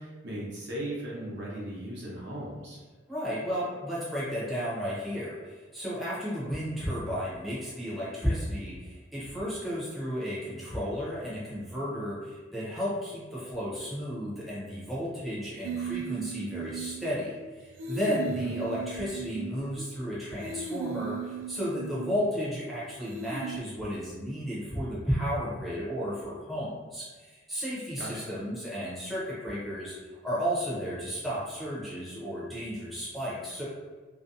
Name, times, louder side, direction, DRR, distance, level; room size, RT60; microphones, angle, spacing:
voice 1, 0.0-2.8 18.4-18.5 28.0-28.3, right 1 dB, 60° right, -5 dB, 0.7 m, -37 dB
voice 2, 3.1-30.0 30.2-33.6, equal, ahead, -9 dB, 0.6 m, -33 dB
sound 1, 15.6-17.5 17.8-20.0 20.4-22.6 23.0-23.6, right 5 dB, 75° right, 0.4 m, -37 dB
2.5 x 2.1 x 2.4 m, 1.4 s
head